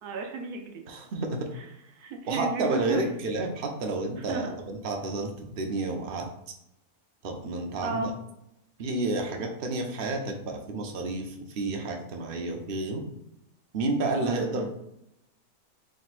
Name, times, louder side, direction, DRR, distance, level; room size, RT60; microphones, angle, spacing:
voice 1, 0.0-0.8 1.5-1.6 1.9-3.0 4.3-4.5 7.8-8.1 14.2-14.6, right 3 dB, 85° right, 3 dB, 1.3 m, -33 dB
voice 2, 0.9-1.5 2.3-6.3 7.2-8.1 8.8-13.0 13.7-14.6, right 2 dB, 55° right, 3 dB, 0.6 m, -30 dB
4.3 x 3.7 x 2.4 m, 0.82 s
omnidirectional pair, 1.6 m